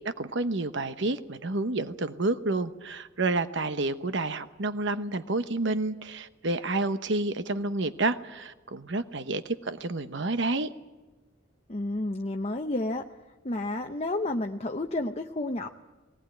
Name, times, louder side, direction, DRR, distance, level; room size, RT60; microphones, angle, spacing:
voice 1, 0.2-10.7, right 2 dB, 60° right, 11 dB, 1.0 m, -29 dB
voice 2, 11.7-13.1 13.4-15.7, left 2 dB, 30° left, 4 dB, 0.8 m, -30 dB
20.5 x 19.0 x 9.3 m, 1.2 s
head